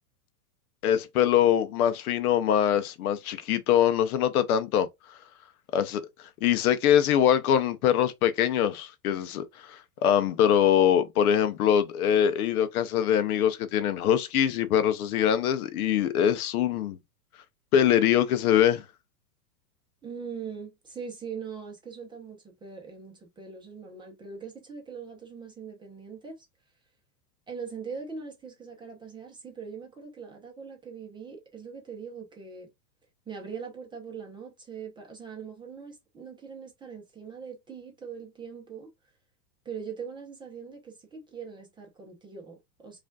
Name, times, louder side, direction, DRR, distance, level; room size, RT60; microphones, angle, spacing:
voice 1, 0.8-4.9 5.7-6.0 6.4-17.0 17.7-18.8, left 9 dB, 60° left, 0.6 m, -23 dB
voice 2, 20.0-26.5 27.5-32.7 33.3-38.9 39.6-43.0, right 6 dB, 10° right, 0.6 m, -41 dB
4.8 x 2.5 x 2.3 m
hypercardioid pair, 135°, 50 cm